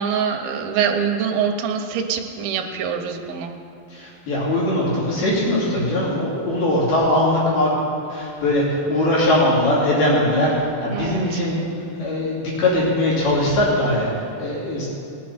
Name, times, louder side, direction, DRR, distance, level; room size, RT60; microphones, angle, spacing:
voice 1, 0.0-3.5 10.9-11.4, right 7 dB, 80° right, 4 dB, 2.6 m, -24 dB
voice 2, 3.9-7.7 8.1-10.5 10.8-11.6 12.0-14.1 14.4-14.9, left 1 dB, 85° left, -7 dB, 4.8 m, -20 dB
19.5 x 8.6 x 4.3 m, 2.5 s
omnidirectional pair, 4.3 m